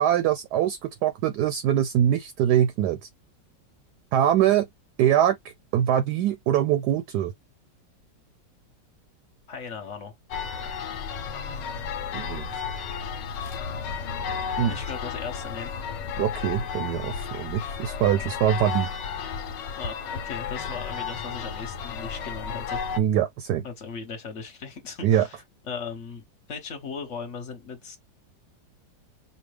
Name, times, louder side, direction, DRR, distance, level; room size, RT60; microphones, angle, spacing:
voice 1, 0.0-3.0 4.1-4.7 5.0-5.4 5.7-7.3 12.1-12.5 14.6-14.7 16.2-18.9 23.0-23.6 25.0-25.3, right 10 dB, 75° right, 1.0 m, -23 dB
voice 2, 9.5-10.1 14.7-15.7 19.8-22.8 23.6-28.0, left 5 dB, 45° left, 1.3 m, -38 dB
sound 1, 10.3-23.0, left 6 dB, 75° left, 1.4 m, -33 dB
5.2 x 2.3 x 3.2 m
omnidirectional pair, 1.9 m